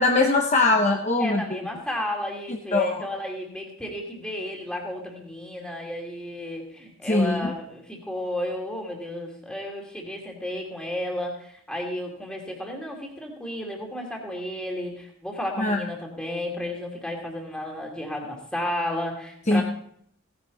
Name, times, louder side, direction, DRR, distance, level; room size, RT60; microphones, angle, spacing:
voice 1, 0.0-1.4 2.5-3.0 7.1-7.5 15.6-15.8 19.5-19.6, left 2 dB, 30° left, 2 dB, 0.9 m, -21 dB
voice 2, 1.2-19.6, left 1 dB, 5° left, 0 dB, 2.6 m, -33 dB
17.0 x 10.5 x 4.1 m, 0.67 s
head